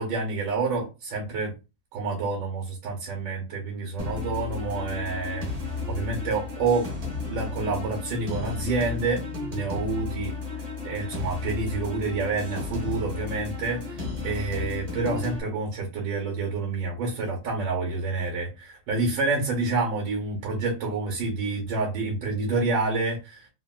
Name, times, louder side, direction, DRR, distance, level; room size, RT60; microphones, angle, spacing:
voice 1, 0.0-1.5 1.9-5.5 5.9-6.9 7.3-10.4 10.8-23.5, right 3 dB, 80° right, -1 dB, 1.4 m, -28 dB
sound 1, 4.0-15.4, left 4 dB, 25° right, 0.9 m, -33 dB
3.4 x 2.1 x 2.3 m, 0.28 s
omnidirectional pair, 1.9 m